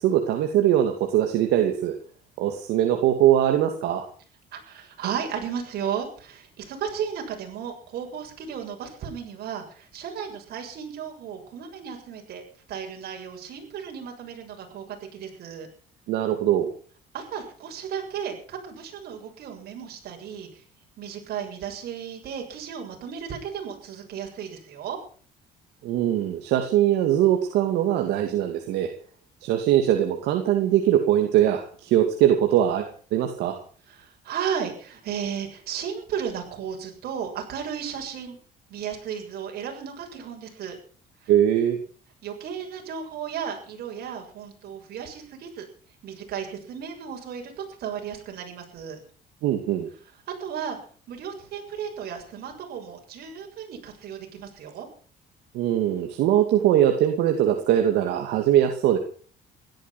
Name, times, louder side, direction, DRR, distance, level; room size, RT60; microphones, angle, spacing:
voice 1, 0.0-1.9 2.4-4.1 16.1-16.7 25.8-28.9 29.4-33.6 41.3-41.8 49.4-49.9 55.5-59.0, right 11 dB, 80° right, 4 dB, 2.6 m, -21 dB
voice 2, 4.5-12.4 12.7-15.7 17.1-20.6 21.0-25.0 33.9-38.4 38.7-40.8 41.2-41.3 42.2-45.6 46.0-49.0 50.4-50.8 51.1-54.9, right 8 dB, 65° right, 2 dB, 7.0 m, -34 dB
17.0 x 13.0 x 6.1 m, 0.43 s
cardioid pair, 110°, 17 cm